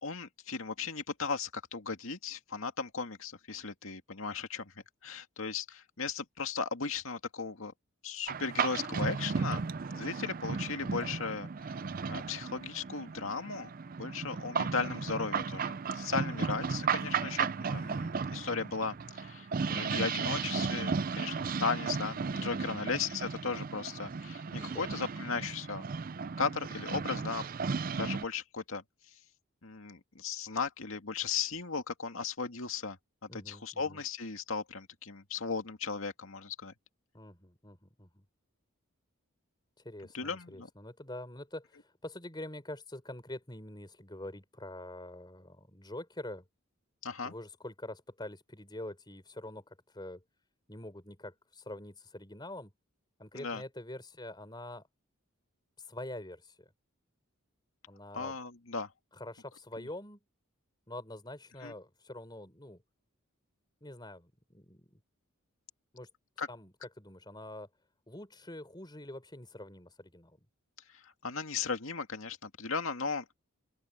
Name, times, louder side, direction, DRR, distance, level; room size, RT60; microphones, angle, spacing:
voice 1, 0.0-4.7 5.0-7.7 8.0-9.6 9.9-11.5 12.1-13.7 14.0-25.8 26.4-27.5 27.9-28.8 29.6-33.0 33.2-36.7 40.1-40.7 47.0-47.3 53.4-53.6 58.1-58.9 61.6-61.7 66.4-66.5 71.0-73.3, left 5 dB, 75° left, 2.1 m, -36 dB
sound 1, 8.3-28.2, right 5 dB, 45° right, 0.4 m, -35 dB
voice 2, 16.3-16.8 22.4-23.0 24.6-24.9 33.3-34.0 37.1-38.2 39.8-46.4 47.2-50.2 50.7-52.7 53.2-54.9 55.8-56.7 57.9-58.4 59.1-60.2 60.9-62.8 63.8-65.0 65.9-66.1 66.5-67.7 68.1-70.4, left 1 dB, 20° left, 4.5 m, -45 dB
open air
head